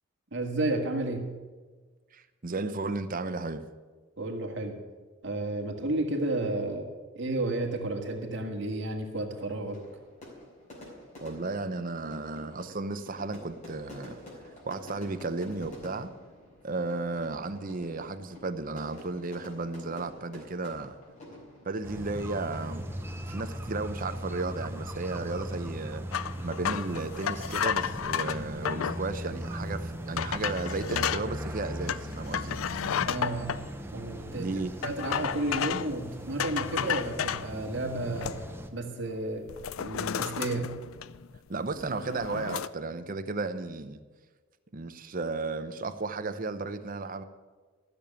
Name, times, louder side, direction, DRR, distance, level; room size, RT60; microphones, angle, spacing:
voice 1, 0.3-1.3 4.2-4.8 5.2-6.9 7.1-9.8 33.0-33.6 33.9-34.5 34.8-38.4 38.7-39.5 39.8-40.7, right 2 dB, 60° right, 2.0 m, -32 dB
voice 2, 2.1-3.7 11.2-14.2 14.7-16.1 16.6-21.0 21.6-22.9 23.2-26.0 26.4-32.6 34.4-34.7 41.5-44.0 44.7-47.2, right 3 dB, 45° right, 0.7 m, -34 dB
Fire / Fireworks, 9.3-23.4, left 1 dB, 35° left, 4.0 m, -49 dB
sound 1, 21.8-38.7, equal, 10° right, 0.8 m, -39 dB
sound 2, 26.1-29.0 29.6-29.7 30.2-31.3 31.9-33.6 34.8-36.0 36.4-37.5 38.0-38.6 39.0-39.2 39.5-41.4 41.7-42.7, left 8 dB, 85° left, 0.4 m, -32 dB
13.5 x 7.0 x 8.7 m
head